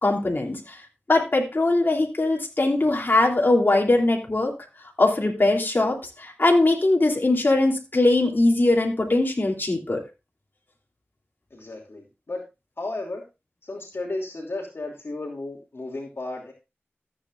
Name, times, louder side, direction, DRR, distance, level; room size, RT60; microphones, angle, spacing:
voice 1, 0.0-0.8 1.1-4.5 5.0-10.0, left 2 dB, 50° left, -1 dB, 3.1 m, -21 dB
voice 2, 11.5-12.4 12.8-13.2 13.6-16.5, left 2 dB, 70° left, -1 dB, 2.8 m, -34 dB
14.5 x 8.7 x 2.5 m, 0.27 s
wide cardioid pair, 55°, 4 cm